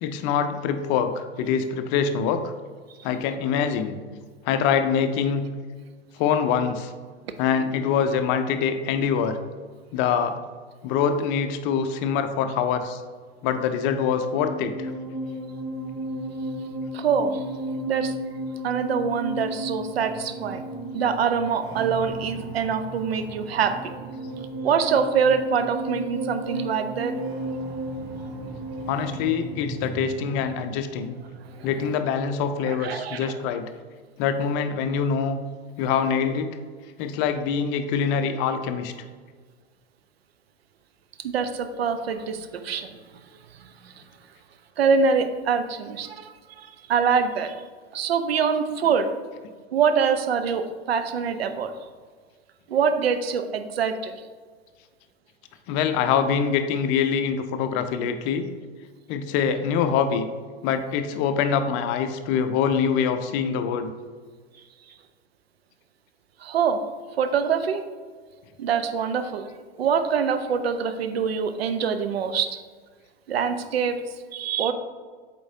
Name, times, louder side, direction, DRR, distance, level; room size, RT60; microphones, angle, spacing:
voice 1, 0.0-2.4 3.0-4.0 4.4-5.4 6.2-6.9 7.4-9.4 9.9-10.4 10.8-13.0 13.4-14.9 28.9-31.1 31.6-33.7 34.2-35.4 35.8-36.5 37.0-38.9 55.7-58.5 59.1-60.3 60.6-63.9, left 7 dB, 40° left, 9 dB, 0.6 m, -24 dB
sound 1, 13.7-32.2, right 1 dB, 35° right, 1.0 m, -34 dB
voice 2, 16.9-17.4 17.9-18.2 18.6-20.6 20.9-23.7 24.6-27.1 31.6-31.7 32.7-33.4 41.2-42.9 43.6-43.9 44.8-47.5 47.9-49.1 49.7-51.7 52.7-54.2 66.4-66.8 67.2-67.8 68.6-69.5 69.8-72.6 73.3-74.0 74.3-74.7, right 6 dB, 70° right, 9 dB, 0.7 m, -24 dB
7.7 x 4.4 x 2.7 m, 1.6 s
figure-of-eight pair, 90°, 32 cm